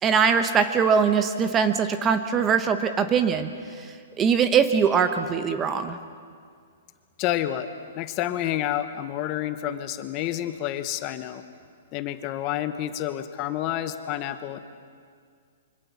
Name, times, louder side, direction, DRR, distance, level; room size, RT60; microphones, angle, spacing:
voice 1, 0.0-3.5 3.8-6.0, right 6 dB, 15° right, 9 dB, 0.9 m, -22 dB
voice 2, 7.2-7.7 7.9-11.4 11.9-14.6, left 12 dB, 25° left, 10 dB, 1.1 m, -29 dB
26.5 x 25.0 x 7.3 m, 2.1 s
hypercardioid pair, 165°, 0 cm